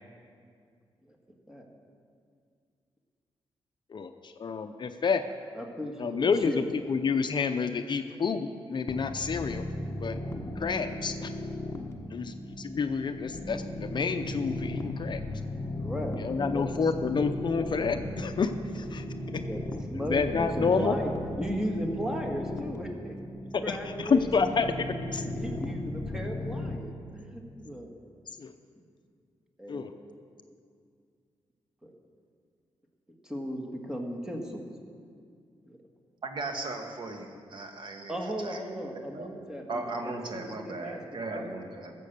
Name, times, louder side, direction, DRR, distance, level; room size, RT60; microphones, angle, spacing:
voice 1, 3.9-5.2 6.0-9.6 10.0-10.2 10.6-11.3 12.1-15.2 16.2-19.0 20.1-20.9 23.7-24.7 25.1-25.2 28.4-28.5 29.7-29.9, left 5 dB, 50° left, 8 dB, 0.6 m, -29 dB
voice 2, 5.5-6.7 15.8-16.7 17.1-17.4 19.3-19.6 19.9-23.2 23.6-24.3 25.2-27.9 29.6-29.9 31.8-31.9 33.2-34.7 35.6-35.8 38.1-41.5, equal, 5° right, 1 dB, 1.8 m, -36 dB
sound 1, 8.9-26.8, left 1 dB, 25° left, 1.0 m, -36 dB
voice 3, 36.2-38.6 38.9-39.3 39.7-41.9, right 2 dB, 50° right, 4 dB, 1.4 m, -37 dB
15.5 x 7.7 x 6.7 m, 2.2 s
cardioid pair, 100°, 10 cm